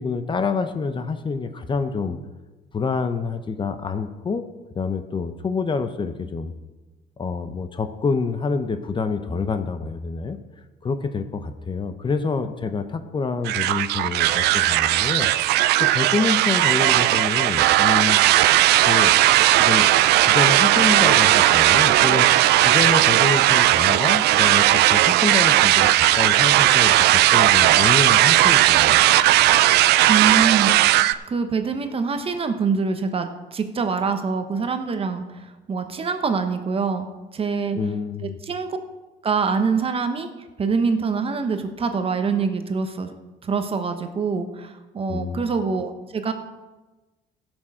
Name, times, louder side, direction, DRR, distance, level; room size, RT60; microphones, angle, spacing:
voice 1, 0.0-2.2 2.7-4.5 4.8-6.5 7.2-10.4 10.8-18.2 18.9-19.2 19.5-19.9 20.2-22.3 22.6-29.0 37.7-38.4 45.1-45.4, left 4 dB, 30° left, 9 dB, 0.7 m, -27 dB
sound 1, 13.4-31.1, right 15 dB, 80° right, 0.4 m, -17 dB
voice 2, 30.1-30.7 31.3-37.1 37.3-37.8 38.2-38.7 39.2-40.3 40.6-43.1 43.4-46.3, right 5 dB, 35° right, 7 dB, 1.0 m, -25 dB
16.0 x 6.3 x 4.9 m, 1.1 s
cardioid pair, 110°, 17 cm